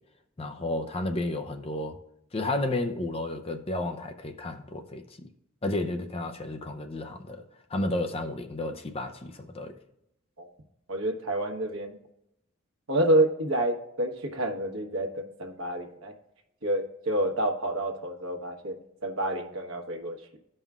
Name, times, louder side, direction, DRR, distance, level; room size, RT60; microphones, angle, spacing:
voice 1, 0.4-2.0 2.3-5.0 5.6-7.4 7.7-9.7, left 2 dB, 25° left, 0.5 m, -32 dB
voice 2, 10.9-12.0 12.9-16.1 16.6-20.4, right 1 dB, 70° right, 1.2 m, -28 dB
15.0 x 5.5 x 2.4 m
head